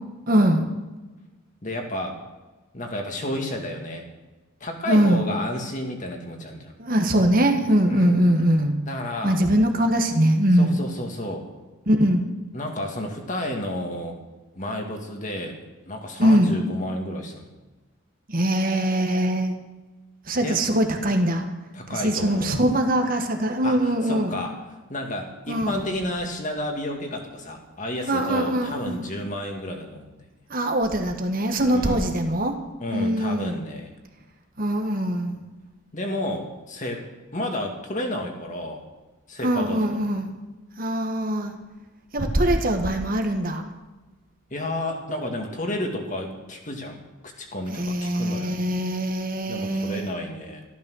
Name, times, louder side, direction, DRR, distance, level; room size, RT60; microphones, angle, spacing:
voice 1, 0.3-0.7 4.8-5.2 6.8-8.7 9.2-10.8 11.9-12.2 16.2-16.6 18.3-19.6 20.3-21.5 21.9-24.4 25.5-25.9 28.0-29.1 30.5-32.5 32.9-33.6 34.6-35.4 39.4-40.3 40.8-41.5 42.1-43.6 47.7-50.1, right 1 dB, 45° right, 5 dB, 1.5 m, -22 dB
voice 2, 1.6-2.2 2.7-4.1 4.6-6.7 7.8-8.2 8.9-9.4 10.6-11.5 12.5-14.2 14.6-15.6 15.9-17.5 20.4-20.6 21.7-22.6 23.6-24.6 24.9-30.2 31.6-32.2 32.8-33.9 35.9-38.8 39.3-40.0 44.5-47.0 47.4-48.6 49.5-50.6, left 1 dB, 35° left, 3 dB, 2.1 m, -31 dB
14.0 x 12.0 x 6.4 m, 1.2 s
head